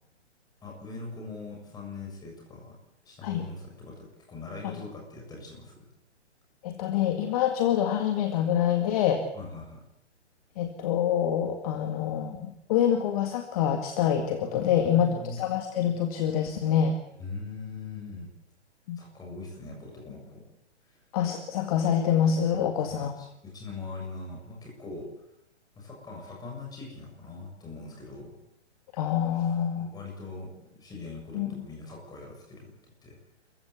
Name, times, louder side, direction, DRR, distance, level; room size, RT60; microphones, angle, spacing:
voice 1, 0.6-2.8 3.0-5.8 9.3-9.8 14.5-15.4 17.2-18.3 19.0-20.4 20.9-21.0 22.5-25.1 25.8-28.3 29.8-32.7 33.0-33.2, left 3 dB, 10° left, 0 dB, 7.1 m, -41 dB
voice 2, 6.6-9.2 10.6-17.0 18.9-19.0 21.1-23.1 28.9-29.9 31.3-31.5, left 9 dB, 30° left, 6 dB, 2.0 m, -26 dB
28.0 x 15.5 x 8.3 m, 0.82 s
figure-of-eight pair, 125°, 34 cm